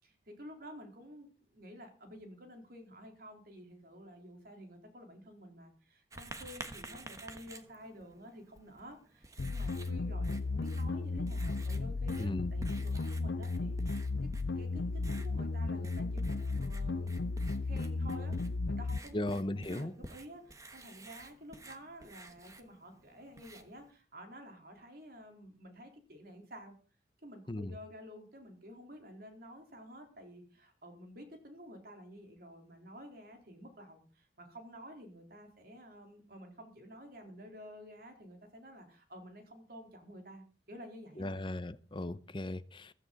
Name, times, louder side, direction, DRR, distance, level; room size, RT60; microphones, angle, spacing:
voice 1, 0.0-14.3 14.6-17.3 17.6-18.4 18.7-26.8 27.2-41.5, equal, 55° right, 3.9 m, -51 dB
Writing, 6.1-23.9, right 2 dB, 20° right, 1.2 m, -51 dB
sound 1, 9.4-19.0, left 3 dB, 75° left, 0.6 m, -34 dB
voice 2, 12.2-12.5 19.1-19.9 27.5-27.7 41.2-42.9, left 1 dB, 25° left, 0.7 m, -37 dB
15.5 x 13.5 x 4.1 m
head